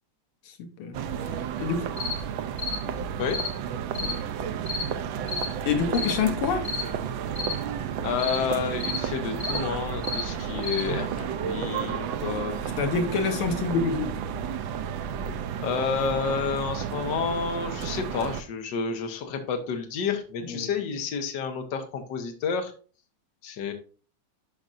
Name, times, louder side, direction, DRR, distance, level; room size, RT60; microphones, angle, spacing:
sound 1, 0.9-18.4, right 8 dB, 70° right, 1.3 m, -32 dB
sound 2, 2.0-2.2 2.6-2.8 3.3-3.5 3.9-4.2 4.7-4.9 5.3-5.5 5.9-6.2 6.6-6.9 7.4-7.6 8.2-8.4 8.8-9.0 9.4-9.6 10.0-10.3 10.6-10.9, left 4 dB, 45° left, 0.9 m, -31 dB
voice 1, 5.7-6.7 12.8-14.1 20.5-20.7, left 5 dB, 85° left, 1.8 m, -26 dB
voice 2, 8.0-12.7 15.6-22.7 23.4-23.7, left 6 dB, 60° left, 1.6 m, -30 dB
11.5 x 5.2 x 2.5 m
omnidirectional pair, 2.3 m